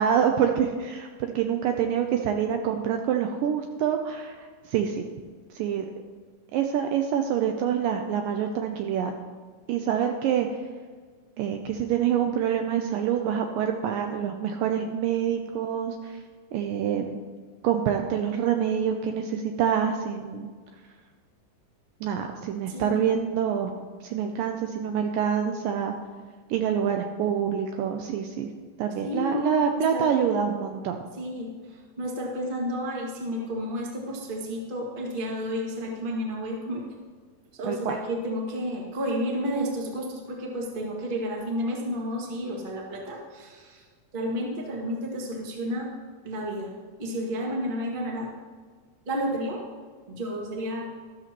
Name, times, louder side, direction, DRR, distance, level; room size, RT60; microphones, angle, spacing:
voice 1, 0.0-5.0 5.5-5.9 6.5-9.2 9.7-10.5 11.4-16.2 16.5-17.2 17.6-20.5 22.0-23.7 24.0-25.9 26.5-28.5 28.8-31.0 37.6-38.0, right 8 dB, 80° right, 4 dB, 2.1 m, -26 dB
voice 2, 29.0-30.2 31.2-31.5 32.0-36.8 37.6-43.8 44.1-45.9 46.2-46.7 47.0-48.3 49.0-49.6 50.1-50.9, equal, 30° right, -2 dB, 0.9 m, -31 dB
13.0 x 13.0 x 3.0 m, 1.6 s
omnidirectional pair, 4.4 m